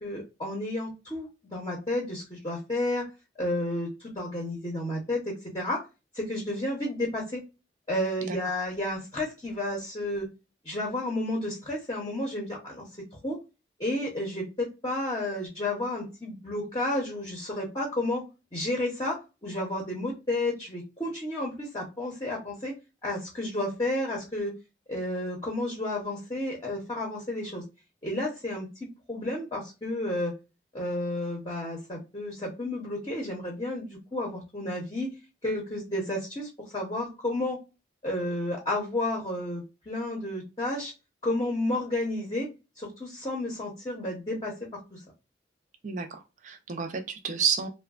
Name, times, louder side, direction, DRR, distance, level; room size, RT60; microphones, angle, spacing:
voice 1, 0.0-3.0 3.4-5.8 6.1-7.4 7.9-10.3 10.6-12.8 13.2-13.4 13.8-18.2 18.5-22.7 23.0-24.5 24.9-27.6 28.0-28.7 29.1-30.3 30.7-35.1 35.4-37.6 38.0-40.9 41.2-42.5 42.8-44.5 44.9-45.0, left 1 dB, 25° left, -1 dB, 0.7 m, -31 dB
voice 2, 45.8-47.7, right 6 dB, 40° right, 5 dB, 0.4 m, -30 dB
3.0 x 2.1 x 2.3 m, 0.28 s
head